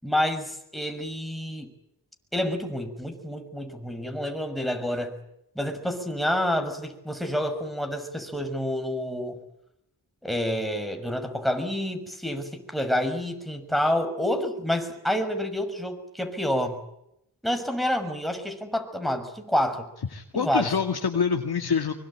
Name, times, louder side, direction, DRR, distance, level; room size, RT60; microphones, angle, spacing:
voice 1, 0.0-1.7 2.3-5.1 5.5-9.4 10.2-16.8 17.4-19.9 20.3-20.7, equal, ahead, 5 dB, 6.3 m, -28 dB
voice 2, 20.1-21.9, left 6 dB, 65° left, 4 dB, 2.2 m, -26 dB
24.0 x 23.5 x 8.9 m, 0.79 s
cardioid pair, 65°, 40 cm